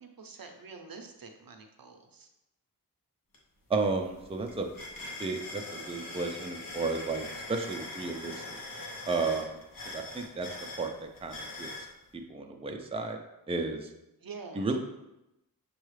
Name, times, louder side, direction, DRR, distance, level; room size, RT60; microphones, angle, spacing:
voice 1, 0.0-2.3 14.2-14.8, right 4 dB, 70° right, 5 dB, 0.6 m, -47 dB
sound 1, 3.3-3.4 3.7-11.9, left 2 dB, 65° left, 0.9 m, -42 dB
voice 2, 3.7-4.7 5.2-8.4 9.1-9.6 9.9-11.9 12.1-13.2 13.5-13.9 14.6-14.8, right 3 dB, 15° right, 4 dB, 0.4 m, -33 dB
6.3 x 2.3 x 3.2 m, 0.91 s
wide cardioid pair, 60°, 36 cm